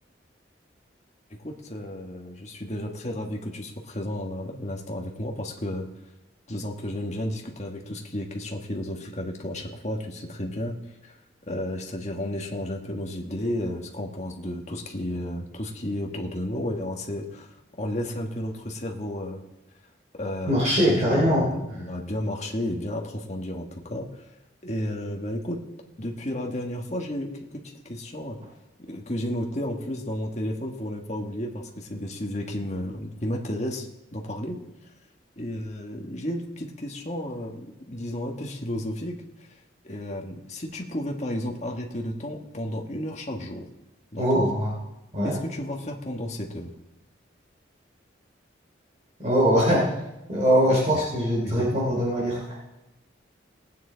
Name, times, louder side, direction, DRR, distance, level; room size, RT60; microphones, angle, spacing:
voice 1, 1.3-5.9 6.5-11.2 11.5-19.4 20.2-24.2 24.6-25.6 26.0-28.4 28.8-33.9 34.1-34.6 35.4-39.6 39.8-43.6 44.1-44.5 45.2-46.7 50.9-51.1 51.4-51.8, left 1 dB, 35° left, 1 dB, 1.4 m, -32 dB
voice 2, 20.5-21.5 21.7-21.8 44.2-44.7 45.1-45.3 49.2-49.8 50.3-52.6, equal, 35° right, -5 dB, 3.4 m, -22 dB
19.0 x 9.2 x 3.9 m, 0.97 s
head